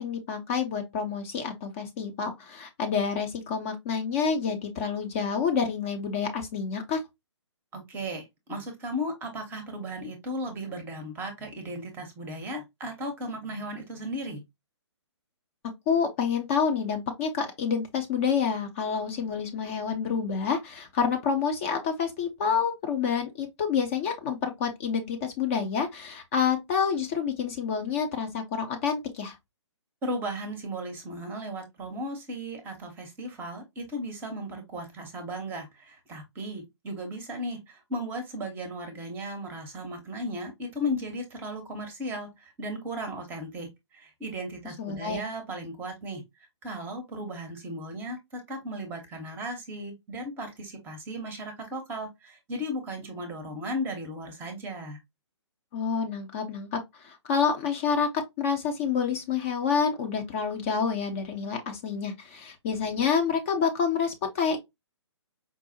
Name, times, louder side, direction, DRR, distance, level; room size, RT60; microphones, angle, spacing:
voice 1, 0.0-7.0 15.9-29.4 44.8-45.2 55.7-64.6, left 6 dB, 30° left, 0.6 m, -28 dB
voice 2, 7.7-14.4 30.0-46.2 46.6-55.0, equal, 15° right, 0.7 m, -36 dB
4.7 x 2.0 x 2.6 m
figure-of-eight pair, 130°, 15 cm